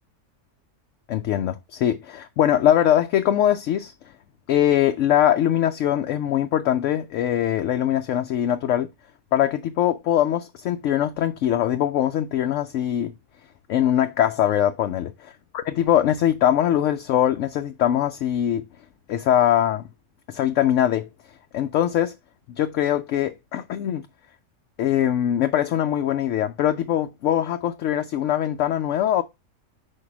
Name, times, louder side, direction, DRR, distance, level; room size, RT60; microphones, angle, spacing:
voice 1, 1.1-3.9 4.5-8.9 9.3-13.1 13.7-15.1 15.5-18.6 19.1-19.8 20.3-21.1 21.5-22.1 22.5-24.0 24.8-29.2, left 11 dB, 70° left, 0.8 m, -22 dB
4.8 x 4.5 x 5.9 m
omnidirectional pair, 1.5 m